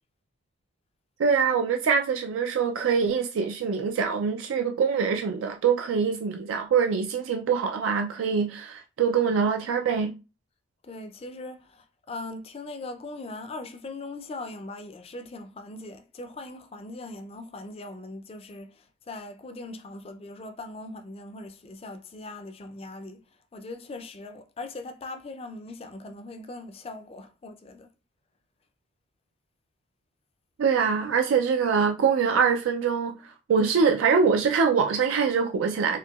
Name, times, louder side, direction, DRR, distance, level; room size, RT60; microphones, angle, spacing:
voice 1, 1.2-10.1 30.6-33.2 33.5-36.0, right 6 dB, 85° right, 0.3 m, -24 dB
voice 2, 10.8-18.7 19.1-23.2 23.5-27.9, left 2 dB, 30° left, 0.3 m, -40 dB
4.4 x 2.7 x 2.3 m
head